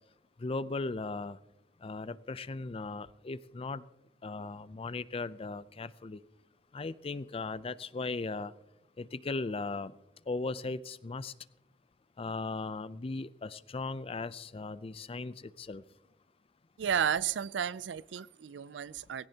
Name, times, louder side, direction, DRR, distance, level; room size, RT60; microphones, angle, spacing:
voice 1, 0.4-1.4 1.8-3.8 4.2-6.2 6.7-8.5 9.0-9.9 10.3-11.3 12.2-15.8, left 3 dB, 35° left, 0.5 m, -37 dB
voice 2, 16.8-19.3, right 8 dB, 90° right, 0.4 m, -32 dB
18.5 x 17.0 x 2.8 m
head